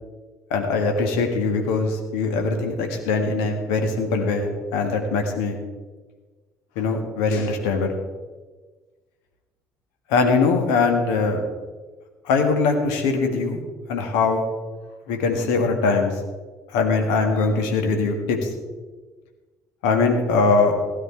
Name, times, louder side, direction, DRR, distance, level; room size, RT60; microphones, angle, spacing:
voice 1, 0.5-5.6 6.7-7.9 10.1-11.4 12.2-13.6 13.9-14.4 15.1-16.1 16.7-18.5 19.8-20.7, left 4 dB, 70° left, 5 dB, 1.7 m, -21 dB
16.0 x 9.4 x 4.4 m, 1.4 s
figure-of-eight pair, 50°, 9 cm